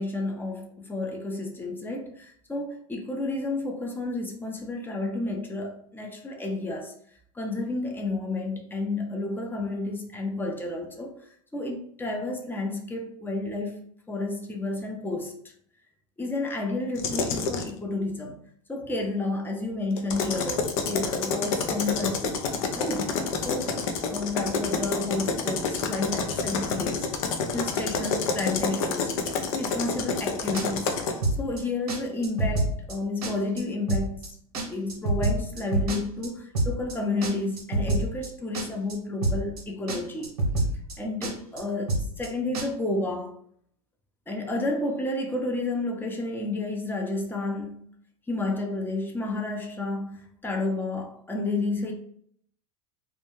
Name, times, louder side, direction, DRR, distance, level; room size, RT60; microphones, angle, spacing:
voice 1, 0.0-6.9 7.4-11.1 11.5-13.8 14.1-15.4 16.2-18.4 18.7-22.4 22.8-23.1 23.4-27.1 27.5-29.2 29.5-31.0 31.4-34.3 34.7-40.3 41.0-43.4 44.3-47.9 48.3-51.9, left 2 dB, 10° left, 0.5 m, -31 dB
sound 1, 17.0-17.7 20.0-31.2, left 5 dB, 65° left, 0.5 m, -28 dB
sound 2, 30.5-30.9 31.2-31.6 31.9-32.0 32.2-32.9 33.2-33.6 33.9-34.3 34.5-36.3 36.5-36.9 37.2-38.3 38.5-38.9 39.2-39.6 39.9-40.0 40.2-40.9 41.2-41.6 41.9-42.3 42.5-42.7, right 2 dB, 80° right, 0.8 m, -26 dB
2.3 x 2.1 x 3.0 m
hypercardioid pair, 90°, 19 cm